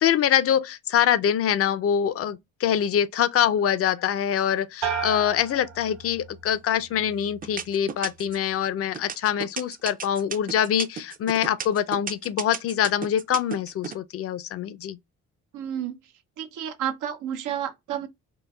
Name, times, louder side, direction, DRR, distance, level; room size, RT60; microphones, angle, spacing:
voice 1, 0.0-15.0, left 9 dB, 50° left, 0.4 m, -24 dB
sound 1, 4.8-6.5 6.9-7.5, right 7 dB, 60° right, 1.0 m, -33 dB
sound 2, 6.5-6.9 7.4-8.4 8.9-13.9, right 6 dB, 30° right, 0.4 m, -34 dB
voice 2, 15.5-16.0 16.4-18.1, right 10 dB, 80° right, 0.6 m, -31 dB
3.7 x 2.0 x 2.2 m
cardioid pair, 90°, 30 cm